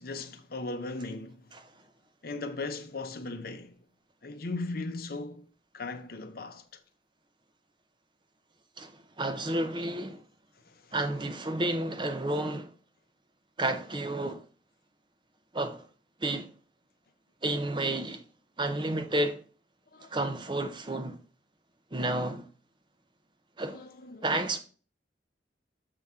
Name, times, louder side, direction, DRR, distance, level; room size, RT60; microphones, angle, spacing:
voice 1, 0.0-1.5 2.2-3.8 4.2-6.6 10.7-10.9 19.9-20.1 23.7-24.5, left 3 dB, 55° left, 0.7 m, -38 dB
voice 2, 8.8-10.2 10.9-12.7 13.6-14.4 15.5-15.8 16.2-16.5 17.4-18.2 18.6-19.4 20.1-21.2 21.9-22.5 23.6-23.8 24.2-24.6, right 1 dB, 25° right, 0.6 m, -31 dB
6.7 x 5.8 x 3.6 m
head